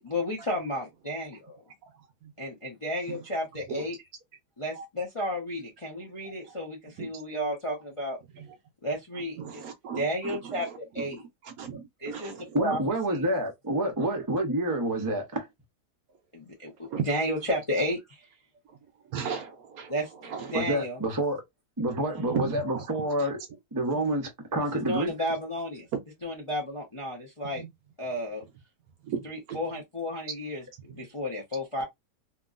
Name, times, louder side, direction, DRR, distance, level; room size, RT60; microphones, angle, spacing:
voice 1, 0.0-1.5 2.4-4.0 4.6-8.2 8.8-9.7 10.0-10.7 10.9-11.2 12.0-12.8 13.1-13.3 16.3-18.3 19.9-21.0 24.9-25.9 26.2-27.6 28.0-28.4 29.2-31.8, equal, 40° left, 0.4 m, -32 dB
voice 2, 9.4-10.7 11.4-12.6 14.0-14.1 16.9-17.0 19.1-19.9 20.2-20.6 22.3-23.0 25.9-26.0 29.0-29.6, right 7 dB, 70° right, 1.0 m, -35 dB
voice 3, 12.5-15.5 20.5-21.4 21.8-23.4 23.7-25.1, right 1 dB, 25° right, 0.4 m, -28 dB
2.9 x 2.6 x 2.4 m
omnidirectional pair, 1.8 m